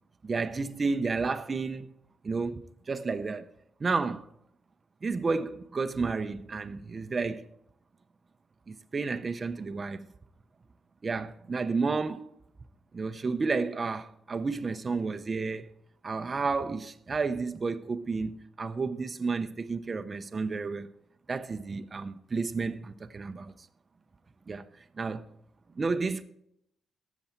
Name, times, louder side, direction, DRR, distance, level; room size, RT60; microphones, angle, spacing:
voice 1, 0.2-1.9 2.2-3.5 3.8-4.3 5.0-7.5 8.7-10.1 11.0-12.3 12.9-15.7 16.0-20.9 21.3-23.5 24.5-25.2 25.8-26.2, right 4 dB, 25° right, 0.5 m, -31 dB
13.0 x 8.0 x 4.3 m
cardioid pair, 155°, 0 cm